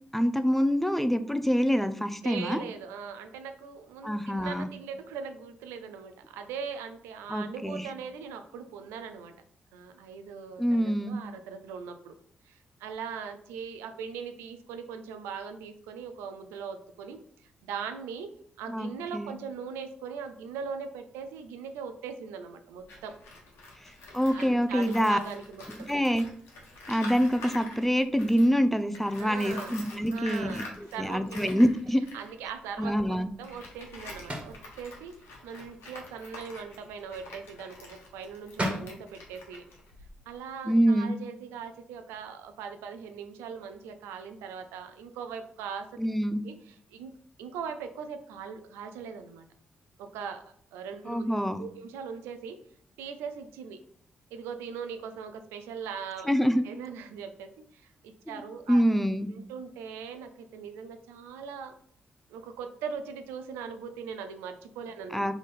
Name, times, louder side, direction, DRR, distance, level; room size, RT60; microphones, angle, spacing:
voice 1, 0.1-2.6 4.0-4.7 7.3-7.9 10.6-11.2 18.7-19.3 24.1-25.2 25.9-26.3 26.9-30.6 31.0-32.0 32.8-33.3 40.7-41.1 46.0-46.4 51.1-51.6 56.3-56.6 58.3-58.4 58.7-59.3 65.1-65.3, equal, 5° left, 10 dB, 0.5 m, -25 dB
voice 2, 2.2-9.3 9.7-12.1 12.4-18.3 18.6-23.2 24.3-25.9 29.2-29.8 30.1-31.5 32.1-35.1 35.4-39.7 40.3-46.0 46.4-47.1 47.4-49.4 50.0-50.4 50.7-51.3 51.6-52.6 53.0-53.8 54.3-56.3 56.6-58.8 59.3-61.7 62.3-65.2, right 6 dB, 85° right, 7 dB, 0.4 m, -40 dB
Tools, 22.8-28.6 28.9-40.4, left 2 dB, 80° left, 1.1 m, -47 dB
sound 1, 34.3-34.6 38.2-38.3 38.6-38.9, equal, 30° right, 1.5 m, -31 dB
3.6 x 3.4 x 4.2 m, 0.62 s
hypercardioid pair, 45°, 4 cm